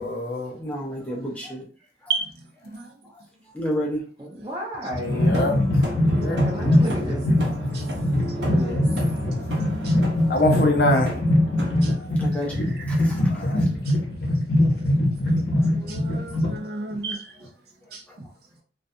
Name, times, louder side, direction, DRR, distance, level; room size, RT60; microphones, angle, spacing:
voice 1, 0.0-0.5 5.2-5.6 6.2-7.0 10.3-11.1 13.3-13.6, left 2 dB, 60° left, 0.5 m, -24 dB
voice 2, 0.6-1.6 3.5-4.0 12.2-12.5 12.9-13.3, equal, 10° left, 0.5 m, -30 dB
voice 3, 4.2-5.4 6.3-7.3 8.3-8.9, equal, 25° right, 0.8 m, -32 dB
sound 1, 4.9-16.6, left 1 dB, 90° left, 0.7 m, -22 dB
sound 2, 5.1-12.0, equal, 80° right, 0.8 m, -32 dB
voice 4, 7.7-8.1 8.4-8.6 9.3-9.4 9.8-9.9 11.8-13.1 13.6-13.9 15.7-17.3 17.9-18.0, right 4 dB, 60° right, 0.5 m, -34 dB
2.4 x 2.2 x 2.6 m
head